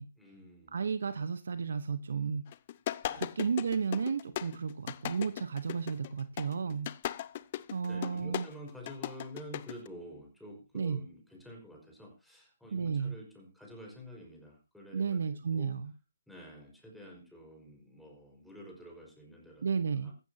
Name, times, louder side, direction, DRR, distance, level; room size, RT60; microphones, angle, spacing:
voice 1, 0.2-0.8 3.0-3.3 7.9-15.8 16.3-19.7 20.0-20.1, equal, ahead, -1 dB, 5.2 m, -49 dB
voice 2, 0.7-2.5 3.2-6.9 7.7-8.5 10.7-11.0 12.7-13.2 14.9-15.9 19.6-20.1, right 6 dB, 60° right, 12 dB, 1.1 m, -33 dB
sound 1, 2.5-9.9, left 13 dB, 35° left, 0.6 m, -37 dB
16.0 x 15.0 x 2.9 m, 0.31 s
figure-of-eight pair, 145°, 0 cm